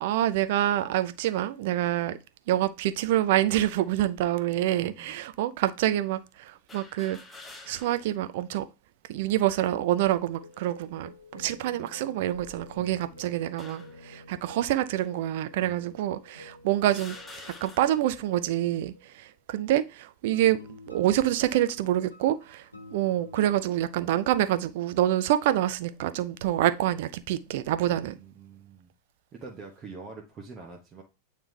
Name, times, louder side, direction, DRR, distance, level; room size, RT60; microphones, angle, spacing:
voice 1, 0.0-2.2 2.5-7.2 7.7-8.6 9.1-17.2 17.6-20.6 20.9-22.6 22.9-28.2, right 13 dB, 50° right, 0.5 m, -26 dB
sound 1, 3.5-3.9 4.7-4.8 6.7-8.1 8.6-8.7 9.8-10.3 10.9-11.2 12.1-13.0 13.6-14.1 15.0-15.1 16.0-16.1 16.8-18.1, left 2 dB, 15° left, 1.0 m, -48 dB
voice 2, 4.8-5.2 12.7-13.2 15.6-16.0 27.9-28.9 29.3-31.0, right 4 dB, 30° right, 1.1 m, -45 dB
sound 2, 9.9-19.1 20.3-23.6, left 1 dB, 85° left, 1.0 m, -50 dB
8.8 x 3.3 x 3.2 m
figure-of-eight pair, 90°, 0 cm